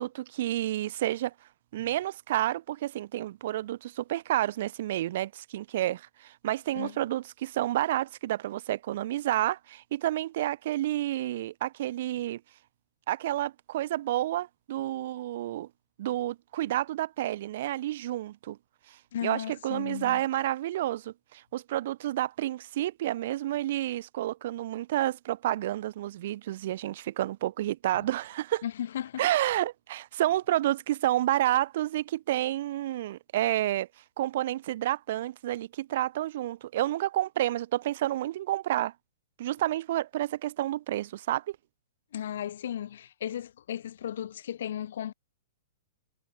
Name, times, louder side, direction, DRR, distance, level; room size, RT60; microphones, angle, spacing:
voice 1, 0.0-1.3 1.7-12.4 13.1-15.7 16.0-18.6 18.9-28.6 29.2-33.9 34.2-38.9 39.4-41.6, right 14 dB, 50° right, 0.5 m, -30 dB
voice 2, 19.1-20.2 28.6-29.2 42.1-45.1, left 10 dB, 55° left, 0.7 m, -35 dB
figure-of-eight pair, 110°, 0 cm